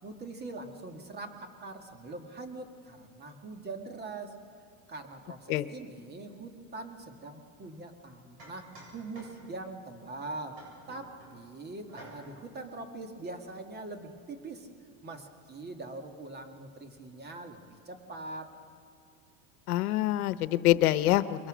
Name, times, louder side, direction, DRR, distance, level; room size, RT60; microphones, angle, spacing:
voice 1, 0.0-4.4 4.9-14.7 15.0-18.6, right 2 dB, 25° right, 5 dB, 2.0 m, -43 dB
sound 1, 7.6-7.7 8.4-9.7 10.5-11.4 11.9-12.5, right 1 dB, 65° right, 7.9 m, -51 dB
voice 2, 19.7-21.5, left 14 dB, 90° left, 14 dB, 1.0 m, -25 dB
27.5 x 22.0 x 6.3 m, 2.3 s
supercardioid pair, 135°, 43 cm